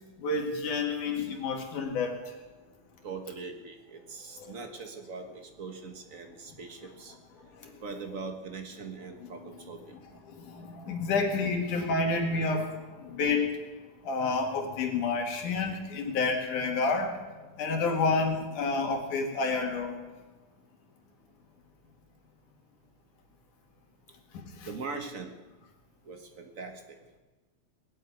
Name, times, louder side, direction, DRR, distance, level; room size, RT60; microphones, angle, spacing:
voice 1, 0.2-2.3 4.4-4.5 7.6-7.8 9.2-9.5 10.3-13.6 14.0-17.2 17.6-20.0 24.3-24.7, left 3 dB, 80° left, 2 dB, 3.4 m, -29 dB
voice 2, 3.0-7.1 7.8-10.0 24.6-25.3 26.0-26.8, right 4 dB, 45° right, 4 dB, 1.1 m, -41 dB
19.5 x 7.7 x 9.2 m, 1.2 s
omnidirectional pair, 3.5 m